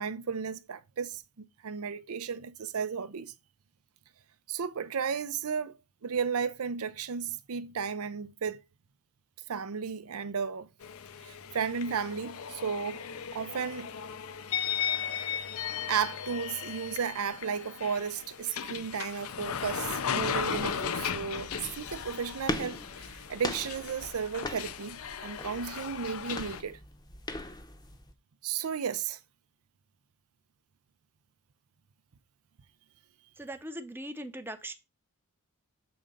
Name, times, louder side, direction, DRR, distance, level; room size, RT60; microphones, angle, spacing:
voice 1, 0.0-3.3 4.5-5.8 6.0-8.6 9.5-10.7 11.2-13.0 13.3-13.9 15.9-26.8 28.4-29.2, right 6 dB, 75° right, 0.6 m, -34 dB
sound 1, 10.8-26.6, left 8 dB, 70° left, 0.6 m, -36 dB
sound 2, 20.3-28.1, left 1 dB, 20° left, 0.8 m, -41 dB
voice 2, 33.4-34.7, right 1 dB, 10° right, 0.7 m, -40 dB
6.9 x 3.7 x 5.2 m
head